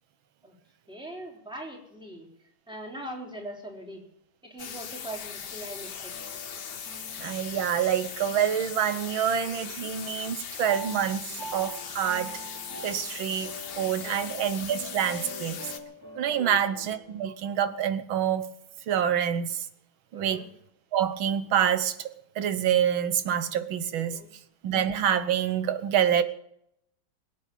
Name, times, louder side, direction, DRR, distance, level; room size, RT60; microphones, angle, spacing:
voice 1, 0.9-2.3 2.7-4.0 4.4-6.1 14.0-14.3 16.4-16.6 20.1-20.5 24.1-24.3, right 1 dB, ahead, 0 dB, 3.8 m, -41 dB
sound 1, 4.6-15.8, left 7 dB, 60° left, 1.8 m, -39 dB
sound 2, 6.1-9.6 9.9-17.2, right 1 dB, 15° left, 3.0 m, -44 dB
voice 2, 7.2-12.3 12.8-15.7 16.2-18.4 18.9-19.7 20.1-20.4 20.9-24.2 24.6-26.2, right 9 dB, 85° right, 12 dB, 1.9 m, -27 dB
21.0 x 8.8 x 6.9 m, 0.74 s
omnidirectional pair, 2.1 m